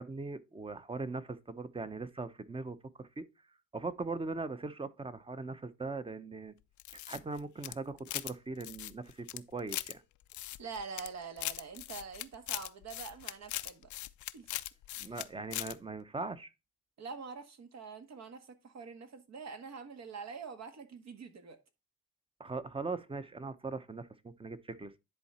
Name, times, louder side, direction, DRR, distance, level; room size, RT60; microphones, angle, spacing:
voice 1, 0.0-3.2 3.7-6.5 7.1-10.0 15.0-16.5 22.4-25.0, right 3 dB, 20° right, 0.8 m, -40 dB
sound 1, 6.8-8.3 8.6-9.9 10.3-11.1 11.4-15.3 15.5-15.7, left 15 dB, 75° left, 0.5 m, -40 dB
voice 2, 10.6-13.9 14.3-14.5 15.0-15.2 17.0-21.6, right 5 dB, 60° right, 1.5 m, -45 dB
10.5 x 3.9 x 4.3 m
cardioid pair, 90°, 30 cm